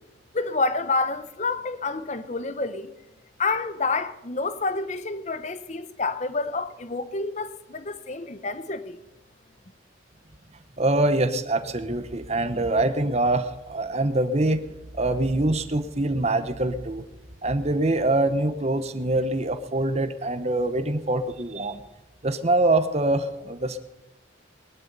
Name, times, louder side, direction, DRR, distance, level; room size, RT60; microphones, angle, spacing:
voice 1, 0.3-2.9 3.4-9.0, left 3 dB, 35° left, 0.8 m, -28 dB
voice 2, 10.8-14.6 14.9-17.0 17.4-21.8 22.2-23.8, right 2 dB, 35° right, 1.0 m, -24 dB
20.0 x 12.0 x 5.4 m
head